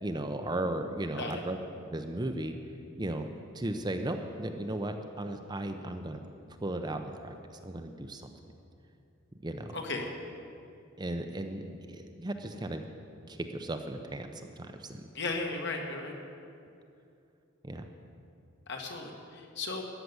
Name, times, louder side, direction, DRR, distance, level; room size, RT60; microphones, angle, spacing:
voice 1, 0.0-1.6 1.9-2.5 3.0-3.3 3.5-6.2 6.6-7.3 7.6-8.3 9.4-9.8 11.0-11.6 11.9-12.8 13.3-14.3 14.6-15.0 17.6-17.9, right 1 dB, 20° right, 6 dB, 0.6 m, -35 dB
voice 2, 9.7-10.1 15.1-16.2 18.7-19.8, left 3 dB, 55° left, 1 dB, 1.6 m, -35 dB
14.0 x 6.8 x 9.5 m, 2.6 s
head